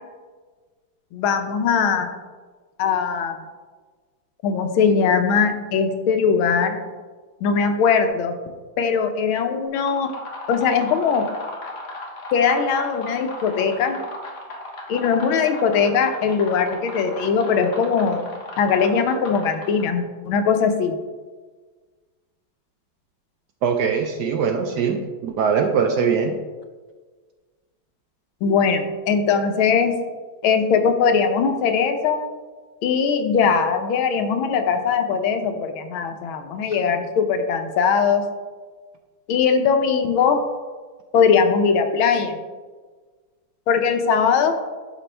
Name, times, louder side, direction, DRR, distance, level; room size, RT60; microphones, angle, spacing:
voice 1, 1.1-2.1 2.8-3.4 4.4-6.8 7.4-8.3 8.8-10.1 10.5-11.2 12.3-14.0 14.9-18.2 18.6-21.0 28.4-29.9 30.4-32.2 32.8-38.2 39.3-40.4 41.1-42.4 43.7-44.5, left 6 dB, 80° left, 6 dB, 1.6 m, -20 dB
sound 1, 9.7-20.0, left 2 dB, 60° left, 1.7 m, -36 dB
voice 2, 23.6-26.4, right 6 dB, 75° right, 5 dB, 1.0 m, -22 dB
11.0 x 5.1 x 3.3 m, 1.4 s
omnidirectional pair, 2.2 m